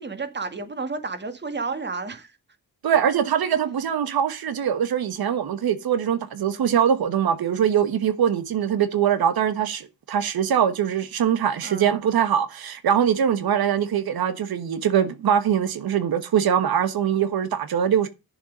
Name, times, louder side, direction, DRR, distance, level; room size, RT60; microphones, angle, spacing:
voice 1, 0.0-2.3 11.6-11.9, right 4 dB, 30° right, 1.9 m, -31 dB
voice 2, 2.8-18.1, right 8 dB, 75° right, 1.3 m, -22 dB
10.5 x 7.2 x 5.1 m
wide cardioid pair, 120°, 37 cm